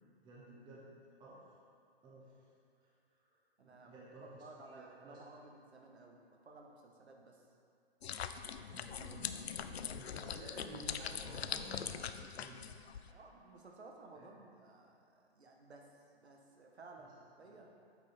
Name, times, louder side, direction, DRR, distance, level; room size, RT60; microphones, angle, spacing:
voice 1, 0.2-0.9 1.2-1.4 2.0-2.3 2.8-5.2 8.7-13.2 14.1-14.3 17.0-17.1 17.5-17.6, right 2 dB, 15° right, -6 dB, 0.9 m, -54 dB
voice 2, 3.6-7.5 13.1-17.7, right 3 dB, 85° right, 1 dB, 1.2 m, -56 dB
sound 1, 8.0-13.1, left 8 dB, 75° left, 0.5 m, -42 dB
8.3 x 4.7 x 4.3 m, 2.5 s
hypercardioid pair, 135°, 32 cm